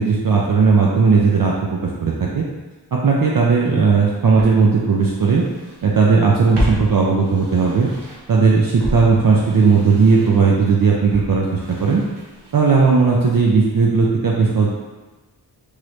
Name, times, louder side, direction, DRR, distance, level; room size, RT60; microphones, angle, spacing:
voice 1, 0.0-2.5 2.9-5.4 5.8-7.9 8.3-11.5 11.8-12.0 12.5-14.7, right 4 dB, 55° right, -3 dB, 0.5 m, -16 dB
Walk footsteps, 3.7-3.8 4.4-5.9 6.1-8.4 8.8-12.8 13.1-13.2, equal, 75° right, 0.9 m, -31 dB
3.1 x 2.5 x 3.1 m, 1.2 s
wide cardioid pair, 50°, 41 cm